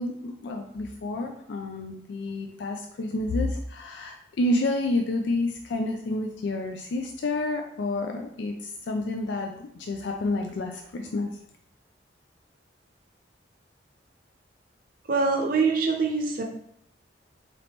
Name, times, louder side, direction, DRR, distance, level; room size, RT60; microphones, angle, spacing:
voice 1, 0.0-11.3, left 2 dB, 75° left, 3 dB, 0.4 m, -29 dB
voice 2, 15.1-16.4, right 4 dB, 50° right, 2 dB, 0.7 m, -24 dB
3.8 x 2.9 x 3.4 m, 0.71 s
head